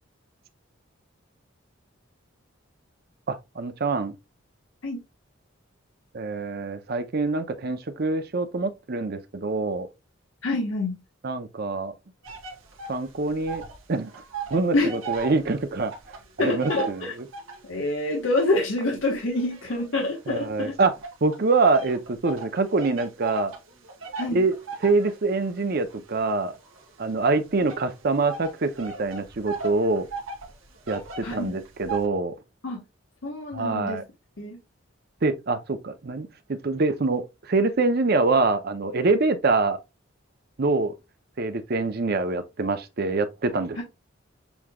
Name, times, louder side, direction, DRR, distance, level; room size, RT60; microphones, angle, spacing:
voice 1, 3.3-4.1 6.1-9.9 11.2-11.9 12.9-13.6 13.9-14.1 14.5-15.9 16.4-17.1 20.3-20.9 21.2-23.5 24.3-24.5 24.8-26.5 27.0-30.1 30.9-32.4 33.5-34.0 35.2-39.8 40.6-41.0 41.4-43.8, right 3 dB, 50° right, 0.6 m, -25 dB
voice 2, 10.4-11.0 14.7-14.9 16.4-17.1 17.6-20.7 24.2-24.4 31.2-31.5 32.6-32.8 33.2-34.0 34.4-34.6 43.8-43.9, left 2 dB, 75° left, 1.3 m, -26 dB
sound 1, 12.2-13.8 14.1-17.7 18.3-20.4 21.0-32.1, right 5 dB, 80° right, 1.5 m, -38 dB
7.0 x 3.0 x 2.2 m
head